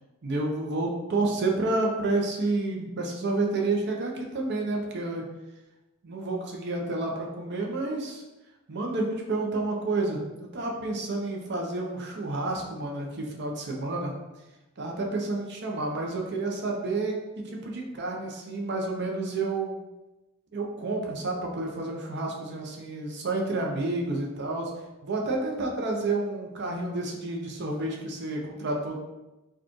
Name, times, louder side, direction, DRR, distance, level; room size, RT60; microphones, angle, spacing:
voice 1, 0.2-5.2 6.0-8.2 8.7-14.1 14.8-17.1 17.4-19.8 20.5-29.0, right 2 dB, 55° right, 0 dB, 0.7 m, -30 dB
4.6 x 2.3 x 3.0 m, 1.0 s
head